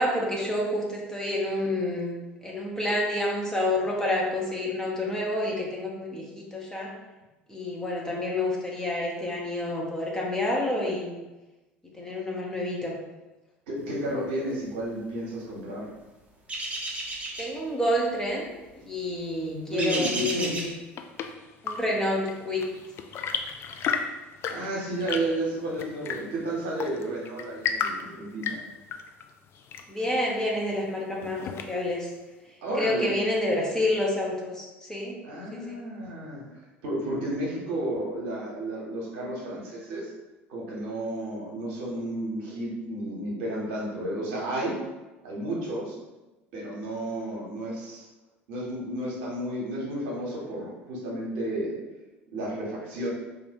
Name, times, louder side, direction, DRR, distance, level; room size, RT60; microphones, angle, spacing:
voice 1, 0.0-6.9 7.5-11.2 11.9-13.0 17.4-18.5 18.7-20.7 21.6-22.7 29.9-32.1 32.7-35.1 35.5-35.8, left 1 dB, 10° left, -3 dB, 0.8 m, -28 dB
voice 2, 13.7-15.9 19.7-20.5 24.5-28.6 32.6-33.2 35.2-36.4 36.8-40.1 40.5-44.8 45.2-46.0 46.5-48.1 48.5-51.8 52.3-53.1, right 1 dB, 60° right, -4 dB, 1.0 m, -32 dB
sound 1, 16.5-17.5 19.8-20.7, right 2 dB, 20° right, 0.8 m, -32 dB
Chirp tweet / Engine / Tap, 20.7-32.0, left 6 dB, 40° left, 0.3 m, -35 dB
2.8 x 2.6 x 4.3 m, 1.1 s
figure-of-eight pair, 65°, 7 cm